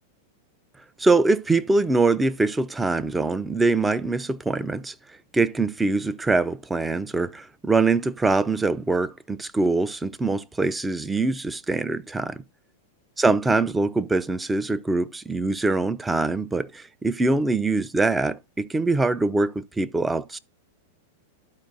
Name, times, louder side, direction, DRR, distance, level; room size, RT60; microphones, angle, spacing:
voice 1, 1.0-4.9 5.3-12.4 13.2-20.4, right 3 dB, 10° right, 0.5 m, -23 dB
12.0 x 4.7 x 2.5 m
hypercardioid pair, 115°, 0 cm